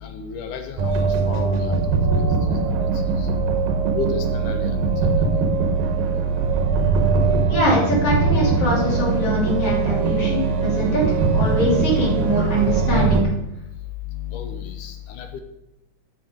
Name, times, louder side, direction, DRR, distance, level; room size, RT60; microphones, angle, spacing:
voice 1, 0.0-0.9 1.3-1.8 2.1-2.2 4.0-4.7 14.3-15.4, left 7 dB, 75° left, 6 dB, 2.1 m, -31 dB
sound 1, 0.8-13.2, right 4 dB, 85° right, 2.7 m, -21 dB
voice 2, 7.5-11.0 11.3-13.3, equal, 45° left, -5 dB, 3.5 m, -23 dB
7.6 x 6.9 x 5.0 m, 0.86 s
omnidirectional pair, 4.0 m